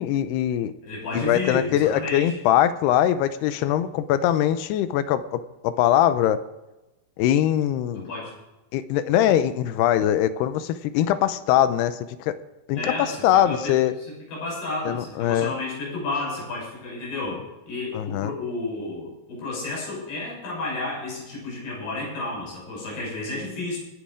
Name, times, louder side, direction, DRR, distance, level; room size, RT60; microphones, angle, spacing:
voice 1, 0.0-0.7 1.1-6.4 7.2-8.1 8.7-12.3 12.7-13.9 14.9-15.5 17.9-18.3, left 11 dB, 85° left, 12 dB, 2.7 m, -22 dB
voice 2, 0.8-2.4 7.9-8.4 12.7-23.8, left 2 dB, 65° left, -3 dB, 8.4 m, -32 dB
19.0 x 8.7 x 4.9 m, 1.0 s
omnidirectional pair, 4.9 m